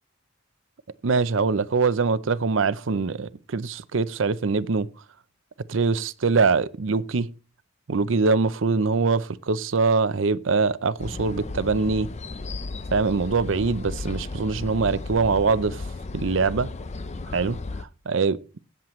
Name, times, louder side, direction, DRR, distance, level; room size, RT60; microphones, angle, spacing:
voice 1, 1.0-4.9 5.7-7.3 7.9-12.1 12.9-15.8 16.1-16.7 17.3-17.6 18.1-18.6, right 4 dB, 75° right, 0.6 m, -23 dB
sound 1, 11.0-17.8, left 3 dB, 35° left, 0.6 m, -34 dB
16.5 x 7.5 x 3.1 m
head